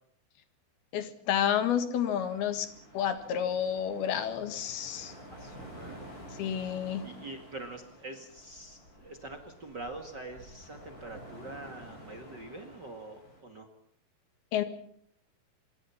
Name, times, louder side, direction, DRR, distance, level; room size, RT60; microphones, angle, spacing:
voice 1, 0.9-2.7 2.9-5.1 6.4-7.0 14.5-14.6, left 9 dB, 75° left, 10 dB, 3.6 m, -30 dB
sound 1, 1.9-13.4, equal, 20° left, 7.3 m, -50 dB
voice 2, 5.3-6.1 7.0-13.7, right 2 dB, 35° right, 7 dB, 2.0 m, -44 dB
26.0 x 22.5 x 5.8 m, 0.65 s
omnidirectional pair, 4.5 m